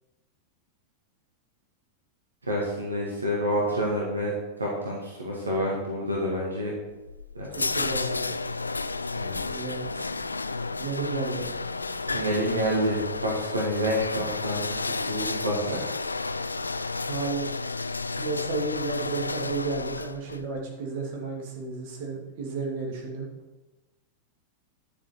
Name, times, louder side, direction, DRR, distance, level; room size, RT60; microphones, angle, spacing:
voice 1, 2.4-4.3 4.6-6.7 7.3-7.7 9.1-9.6 12.1-15.9, equal, 80° right, -3 dB, 1.9 m, -28 dB
sound 1, 6.9-20.4, left 3 dB, 80° left, 0.3 m, -32 dB
voice 2, 7.5-8.3 9.5-10.1 10.7-11.6 17.1-17.5 17.9-23.3, right 3 dB, 50° right, -2 dB, 2.9 m, -32 dB
11.0 x 7.2 x 4.6 m, 1.1 s
figure-of-eight pair, 90°, 0 cm